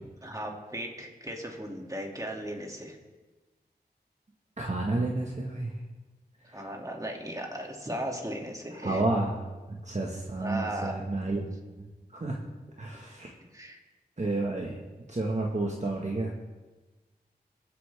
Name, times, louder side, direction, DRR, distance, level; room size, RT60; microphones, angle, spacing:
voice 1, 0.2-3.0 6.4-9.0 10.4-10.9 13.1-13.2 13.5-13.8, right 1 dB, 20° right, 0 dB, 2.8 m, -37 dB
voice 2, 4.6-5.7 6.5-6.6 8.8-9.3 9.7-11.5 12.1-12.4 12.8-13.3 14.2-14.8 15.1-16.3, right 2 dB, 45° right, -1 dB, 1.8 m, -30 dB
22.0 x 8.4 x 3.7 m, 1.2 s
cardioid pair, 40°, 17 cm